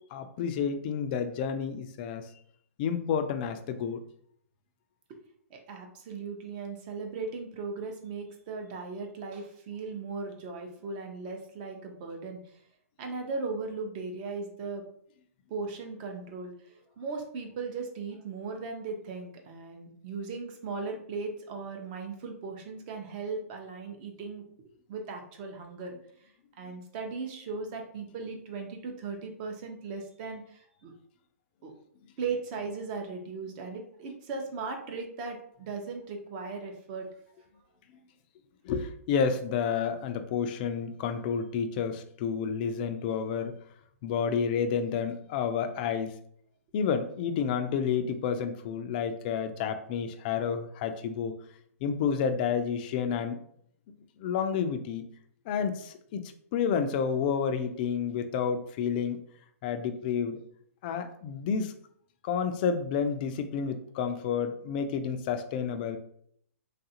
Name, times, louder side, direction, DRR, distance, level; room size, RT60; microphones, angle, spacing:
voice 1, 0.1-2.3 2.8-4.0 26.7-26.8 38.6-43.6 44.0-46.2 46.7-51.4 51.8-53.4 54.2-55.1 55.5-59.2 59.6-60.4 60.8-61.7 62.2-66.0, left 6 dB, 35° left, 8 dB, 0.3 m, -30 dB
voice 2, 5.5-12.4 13.0-14.8 15.5-24.4 24.9-25.9 26.6-30.9 31.6-31.7 32.2-37.1, right 4 dB, 35° right, 3 dB, 0.6 m, -37 dB
3.2 x 2.4 x 2.8 m, 0.66 s
hypercardioid pair, 150°, 8 cm